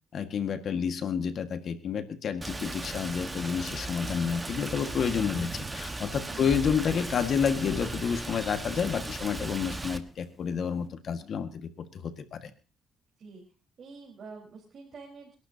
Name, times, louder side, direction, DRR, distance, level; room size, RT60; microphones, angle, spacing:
voice 1, 0.1-12.5, left 7 dB, 60° left, 8 dB, 1.7 m, -30 dB
Rain, 2.4-10.0, right 2 dB, 20° right, 1.4 m, -37 dB
sound 1, 2.7-10.9, left 3 dB, 20° left, 3.0 m, -48 dB
voice 2, 6.2-6.7 12.4-12.5 13.2-13.4 13.8-15.3, right 4 dB, 55° right, -1 dB, 4.4 m, -47 dB
29.0 x 11.5 x 2.9 m, 0.34 s
cardioid pair, 90°, 0 cm